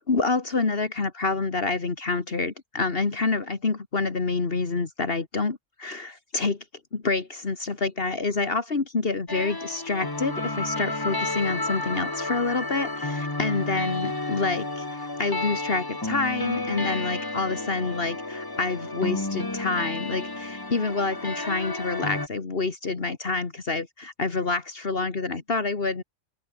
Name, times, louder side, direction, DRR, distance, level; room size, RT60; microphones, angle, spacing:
voice 1, 0.1-6.6 6.9-26.0, left 3 dB, 55° left, 2.1 m, -27 dB
sound 1, 9.3-22.3, left 2 dB, 20° left, 1.5 m, -31 dB
omnidirectional pair, 1.2 m